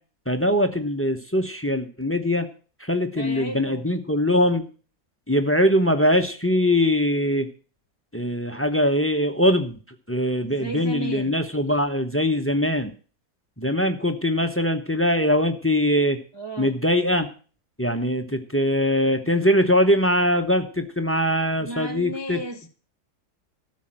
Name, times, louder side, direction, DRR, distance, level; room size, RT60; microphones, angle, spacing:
voice 1, 0.3-2.5 2.8-4.6 5.3-7.5 8.1-9.7 10.1-12.9 13.6-16.2 16.6-17.3 17.8-22.4, left 1 dB, 10° left, 0.8 m, -22 dB
voice 2, 3.2-3.8 10.4-11.3 16.3-16.8 21.6-22.7, right 2 dB, 30° right, 0.5 m, -34 dB
13.0 x 6.4 x 7.7 m
omnidirectional pair, 1.6 m